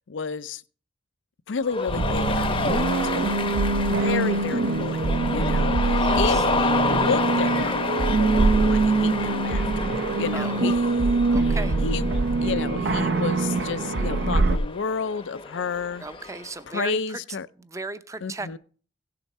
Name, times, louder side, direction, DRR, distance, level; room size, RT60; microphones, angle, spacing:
voice 1, 0.1-0.6 1.5-3.1 4.0-10.8 11.4-12.1 12.4-16.0 16.7-17.5 18.2-18.6, left 5 dB, 80° left, 0.5 m, -31 dB
Cheering, 1.7-16.5, left 4 dB, 30° left, 0.8 m, -30 dB
Slowed Down Piano & Drums, 1.9-14.6, right 3 dB, 65° right, 0.6 m, -23 dB
voice 2, 6.0-6.4 10.3-10.8 11.3-11.8 16.0-17.2 17.7-18.6, right 3 dB, 15° right, 0.6 m, -36 dB
17.0 x 6.9 x 4.1 m
head